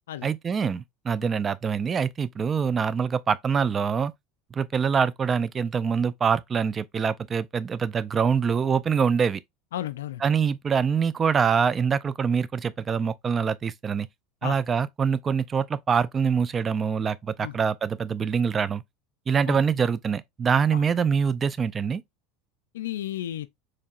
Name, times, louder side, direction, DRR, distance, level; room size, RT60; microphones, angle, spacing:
voice 1, 0.2-4.1 4.5-9.4 10.2-14.1 14.4-18.8 19.3-22.0, right 6 dB, 30° right, 0.4 m, -24 dB
voice 2, 9.7-10.2 14.4-14.6 17.4-17.6 19.5-19.6 20.7-20.8 22.7-23.5, left 12 dB, 85° left, 0.3 m, -33 dB
4.5 x 3.2 x 2.4 m
hypercardioid pair, 90°, 0 cm